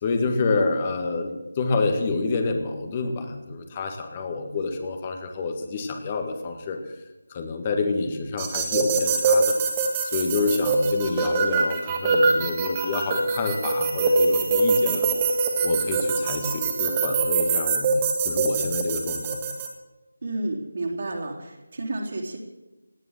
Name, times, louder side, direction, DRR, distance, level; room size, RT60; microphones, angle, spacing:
voice 1, 0.0-6.9 7.3-9.6 10.0-15.1 15.6-19.4, left 3 dB, 20° left, 5 dB, 1.8 m, -28 dB
sound 1, 8.4-19.7, right 3 dB, 15° right, 1.9 m, -23 dB
voice 2, 20.2-22.4, right 2 dB, 40° right, 0 dB, 3.4 m, -31 dB
17.5 x 11.0 x 7.6 m, 1.1 s
figure-of-eight pair, 160°, 0 cm